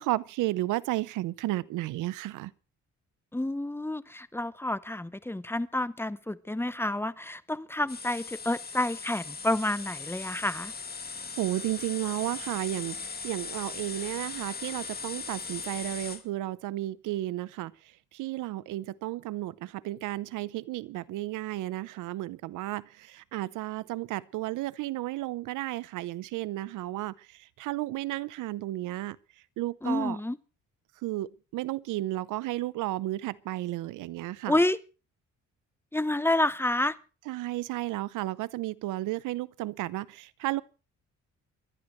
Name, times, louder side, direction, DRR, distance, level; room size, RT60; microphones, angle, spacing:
voice 1, 0.0-2.5 11.4-13.0 13.2-17.7 18.1-27.1 27.6-29.2 29.6-30.2 31.0-34.5 37.3-40.6, right 16 dB, 90° right, 0.7 m, -33 dB
voice 2, 3.3-10.7 29.8-30.4 34.4-34.8 35.9-37.0, left 1 dB, 10° left, 0.8 m, -29 dB
sound 1, 7.9-16.2, left 5 dB, 30° left, 2.2 m, -39 dB
26.5 x 11.5 x 3.1 m
cardioid pair, 90°, 30 cm